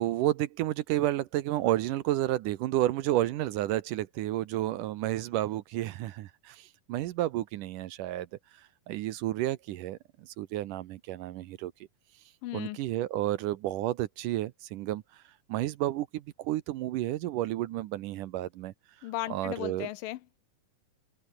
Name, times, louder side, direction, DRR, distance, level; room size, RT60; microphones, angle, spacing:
voice 1, 0.0-8.3 8.6-11.7 12.5-15.2 15.5-18.7 19.3-19.9, right 14 dB, 75° right, 2.2 m, -31 dB
voice 2, 12.4-12.8 19.0-20.4, left 16 dB, 80° left, 2.3 m, -36 dB
omnidirectional pair, 4.2 m